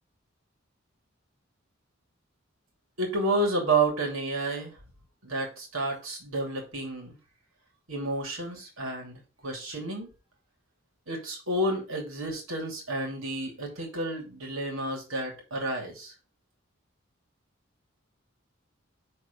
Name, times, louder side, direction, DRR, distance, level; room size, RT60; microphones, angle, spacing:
voice 1, 3.0-4.7 5.2-7.1 7.9-10.1 11.1-16.1, right 2 dB, 90° right, 1 dB, 2.8 m, -30 dB
6.5 x 3.9 x 5.2 m, 0.32 s
head